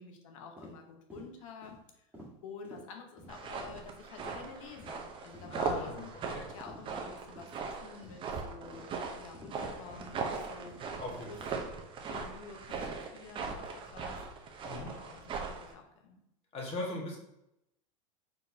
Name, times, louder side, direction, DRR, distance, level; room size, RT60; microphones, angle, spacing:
voice 1, 0.0-2.1 2.4-8.9 9.1-11.4 12.1-16.2, left 5 dB, 80° left, 4 dB, 1.0 m, -50 dB
sound 1, 0.6-0.7 1.1-1.3 1.6-1.8 2.1-2.3 2.6-2.8 3.2-3.4 3.7-3.8 4.2-4.4 4.8-4.9 5.3-5.5 6.0-6.2 6.7-6.8 7.4-7.5 8.0-8.2 8.7-8.9 9.3-9.5 10.0-10.2 10.7-10.8 11.4-11.6 12.1-12.3 12.7-12.9, equal, 10° right, 1.6 m, -51 dB
sound 2, 3.3-15.7, right 4 dB, 30° right, 0.7 m, -39 dB
voice 2, 5.5-6.5 11.0-11.5 14.7-14.9 16.5-17.2, left 2 dB, 35° left, -2 dB, 1.6 m, -40 dB
4.3 x 4.1 x 2.8 m, 0.84 s
supercardioid pair, 115°, 17 cm